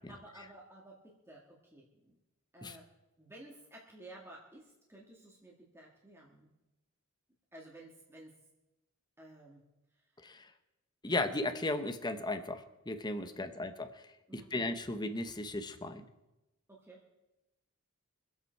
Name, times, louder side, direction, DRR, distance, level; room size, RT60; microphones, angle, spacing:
voice 1, 0.1-2.2 2.5-2.9 3.2-6.5 7.5-8.3 9.2-9.6 13.2-13.5 14.3-14.5 16.7-17.0, right 1 dB, 10° right, -3 dB, 2.0 m, -54 dB
voice 2, 11.0-14.0 14.3-16.0, left 2 dB, 20° left, 8 dB, 1.0 m, -36 dB
24.5 x 8.3 x 4.6 m, 0.98 s
head